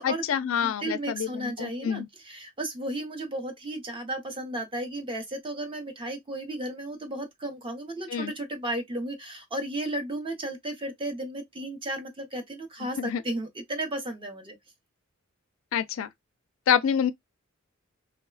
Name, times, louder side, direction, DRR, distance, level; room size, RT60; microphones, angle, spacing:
voice 1, 0.0-2.1 8.1-8.3 13.0-13.2 15.7-16.1 16.7-17.1, left 8 dB, 70° left, 0.4 m, -27 dB
voice 2, 0.6-14.6, right 1 dB, 25° right, 0.6 m, -34 dB
3.1 x 2.0 x 2.2 m
head